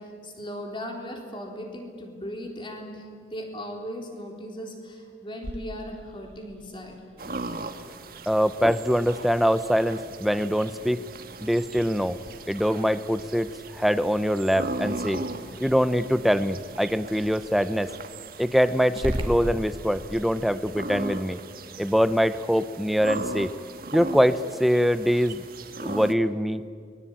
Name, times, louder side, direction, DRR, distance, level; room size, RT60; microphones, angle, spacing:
voice 1, 0.0-7.0, equal, 25° left, 2 dB, 3.9 m, -38 dB
Growling, 5.4-20.2, equal, 30° right, 2.2 m, -41 dB
sound 1, 7.2-26.1, right 2 dB, 50° right, 1.5 m, -38 dB
voice 2, 8.3-11.0 11.4-12.2 12.5-15.2 15.6-17.9 18.4-21.4 21.8-23.5 23.9-25.4 25.8-26.6, equal, ahead, 13 dB, 0.6 m, -23 dB
29.5 x 21.5 x 8.9 m, 2.2 s
head